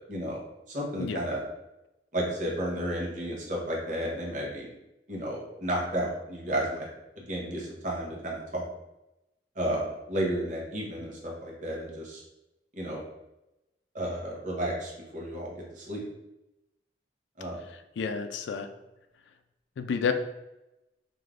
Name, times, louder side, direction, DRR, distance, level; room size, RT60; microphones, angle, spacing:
voice 1, 0.1-0.4 0.7-1.4 2.1-4.7 5.1-6.9 7.2-8.7 9.6-12.2 12.8-13.0 13.9-16.0 17.4-17.6, right 1 dB, 45° right, -3 dB, 0.9 m, -32 dB
voice 2, 18.0-18.7 19.8-20.1, left 6 dB, 85° left, 8 dB, 0.3 m, -29 dB
2.5 x 2.4 x 3.3 m, 0.94 s
head